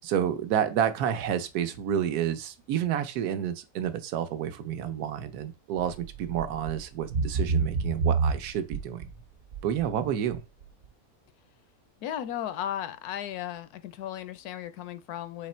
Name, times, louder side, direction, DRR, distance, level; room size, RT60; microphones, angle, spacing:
voice 1, 0.0-9.1 9.6-10.4, right 9 dB, 90° right, 1.2 m, -29 dB
sound 1, 5.8-6.0 6.3-6.8 7.1-9.1 9.5-9.9 10.3-10.4, right 4 dB, 65° right, 0.9 m, -27 dB
voice 2, 12.0-15.5, left 11 dB, 85° left, 1.1 m, -35 dB
4.1 x 2.9 x 4.3 m
omnidirectional pair, 1.6 m